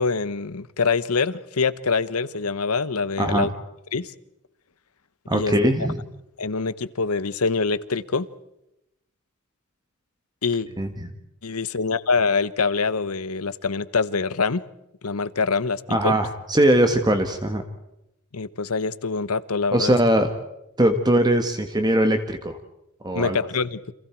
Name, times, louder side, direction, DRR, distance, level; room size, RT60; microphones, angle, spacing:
voice 1, 0.0-3.5 3.9-4.1 5.3-5.5 6.4-8.3 10.4-10.7 11.4-14.6 15.0-16.1 18.3-19.9 23.1-23.8, left 4 dB, 85° left, 16 dB, 1.0 m, -24 dB
voice 2, 5.3-6.0 10.8-11.1 15.9-17.6 19.7-20.3 20.8-22.6 23.0-23.4, right 1 dB, 20° right, 6 dB, 1.5 m, -21 dB
30.0 x 27.0 x 4.6 m, 0.88 s
head